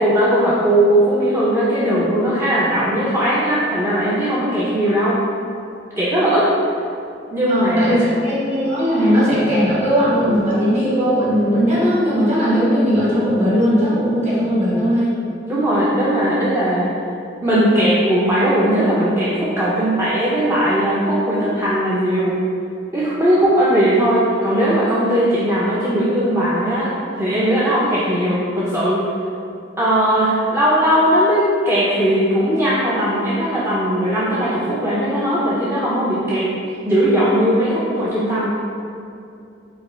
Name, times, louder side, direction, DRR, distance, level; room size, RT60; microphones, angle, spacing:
voice 1, 0.0-5.2 6.0-6.5 7.3-8.1 15.5-16.9 17.4-22.4 22.9-29.0 29.8-36.5 36.8-38.5, equal, 15° right, -9 dB, 0.4 m, -18 dB
voice 2, 7.5-15.1, equal, 40° right, -9 dB, 1.3 m, -18 dB
4.7 x 2.2 x 3.2 m, 2.6 s
head